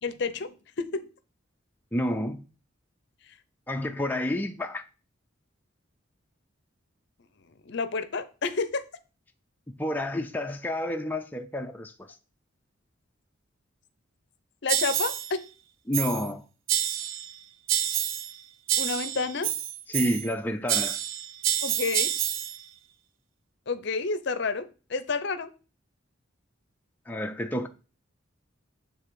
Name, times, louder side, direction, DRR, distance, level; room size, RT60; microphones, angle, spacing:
voice 1, 0.0-1.1 7.7-8.8 14.6-15.4 18.8-19.5 21.6-22.1 23.7-25.5, left 4 dB, 55° left, 0.6 m, -30 dB
voice 2, 1.9-2.4 3.7-4.8 9.7-11.9 15.9-16.4 19.9-21.0 27.1-27.7, left 1 dB, 10° left, 0.4 m, -29 dB
sound 1, 14.7-15.3 15.9-16.3 16.7-17.3 17.7-18.4 18.7-20.3 20.7-22.6, right 11 dB, 75° right, 0.5 m, -28 dB
8.9 x 3.3 x 4.7 m
head